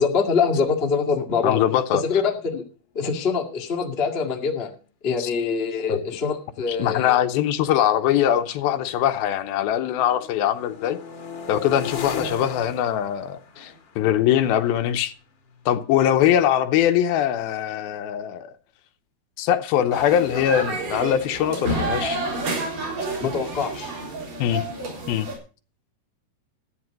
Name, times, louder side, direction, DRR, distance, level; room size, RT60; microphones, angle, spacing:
voice 1, 0.0-1.6 2.0-2.6 2.9-4.7 5.0-7.2 23.2-23.9, left 5 dB, 35° left, 0.9 m, -24 dB
voice 2, 1.4-2.0 5.2-5.3 5.9-6.0 6.7-11.0 11.5-15.1 15.7-18.5 19.4-22.2 24.4-24.6 25.1-25.3, left 10 dB, 80° left, 2.6 m, -22 dB
sound 1, 4.0-4.1 4.3-4.7 5.4-9.3 9.7-16.3, left 5 dB, 50° left, 1.4 m, -40 dB
sound 2, 19.9-25.3, right 2 dB, 60° right, 5.5 m, -29 dB
12.5 x 9.5 x 5.2 m
omnidirectional pair, 4.4 m